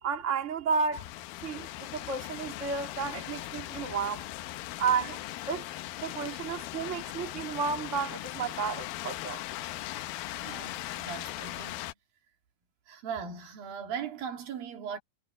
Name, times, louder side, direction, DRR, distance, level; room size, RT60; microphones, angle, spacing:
voice 1, 0.0-1.1 1.4-4.2 4.8-5.2 5.5-5.7 6.0-9.4, right 5 dB, 25° right, 1.9 m, -32 dB
sound 1, 0.9-11.9, left 16 dB, 80° left, 2.4 m, -39 dB
voice 2, 10.3-11.9 12.9-15.0, right 7 dB, 70° right, 4.2 m, -39 dB
omnidirectional pair, 4.3 m